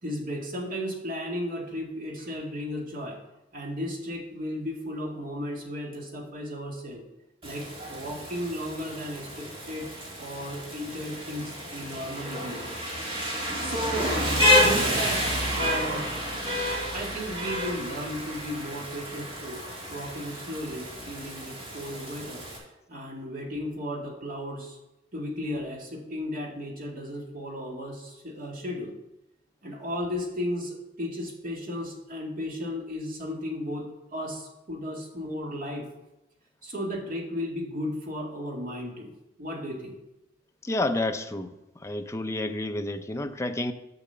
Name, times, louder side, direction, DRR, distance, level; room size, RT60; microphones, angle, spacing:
voice 1, 0.0-3.2 3.5-7.0 7.4-9.9 10.2-12.7 13.6-14.1 14.6-15.2 15.5-16.1 16.9-19.6 19.9-22.5 22.9-24.8 25.1-28.9 29.6-35.9 36.6-39.1 39.4-40.0, equal, 45° right, 0 dB, 1.9 m, -34 dB
Rain, 7.4-22.6, left 1 dB, 30° right, 2.2 m, -29 dB
voice 2, 40.6-41.6 41.8-43.7, left 2 dB, 15° left, 7 dB, 0.5 m, -29 dB
7.0 x 6.2 x 6.8 m, 0.94 s
head